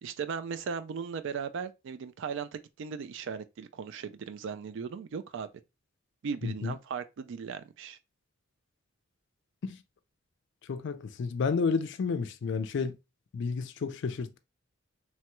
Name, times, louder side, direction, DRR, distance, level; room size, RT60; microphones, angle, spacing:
voice 1, 0.0-5.5 6.2-8.0, right 6 dB, 60° right, 0.3 m, -37 dB
voice 2, 6.4-6.7 9.6-9.8 10.7-13.0 13.3-14.4, left 5 dB, 60° left, 0.4 m, -31 dB
3.1 x 2.2 x 2.9 m
head